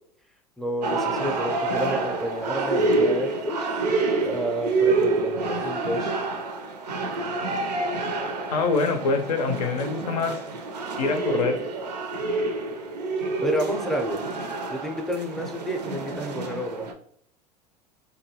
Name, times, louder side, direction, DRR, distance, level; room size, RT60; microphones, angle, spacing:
voice 1, 0.6-3.7 4.2-6.1 13.4-14.2 14.7-16.9, right 1 dB, ahead, 3 dB, 0.5 m, -30 dB
sound 1, 0.8-16.9, right 3 dB, 85° right, 0.4 m, -27 dB
voice 2, 8.5-10.4 11.0-11.6, left 4 dB, 75° left, 5 dB, 0.5 m, -24 dB
2.7 x 2.3 x 2.7 m, 0.65 s
figure-of-eight pair, 80°, 20 cm